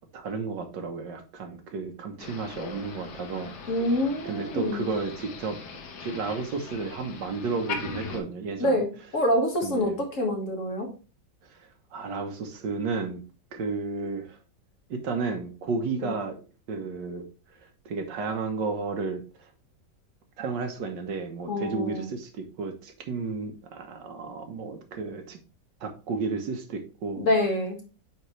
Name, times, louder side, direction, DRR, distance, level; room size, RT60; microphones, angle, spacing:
voice 1, 0.1-3.5 4.2-5.6 6.0-8.8 9.6-10.0 11.5-13.2 13.5-14.4 14.9-16.4 16.7-17.3 17.8-19.5 20.4-25.4 25.8-27.2, right 4 dB, 80° right, 1.7 m, -32 dB
Motor vehicle (road), 2.2-8.2, left 5 dB, 70° left, 1.6 m, -40 dB
voice 2, 3.7-4.9 8.6-10.9 16.0-16.1 21.5-22.1 27.2-27.8, left 1 dB, 45° left, 1.8 m, -26 dB
8.9 x 3.6 x 3.1 m
omnidirectional pair, 1.9 m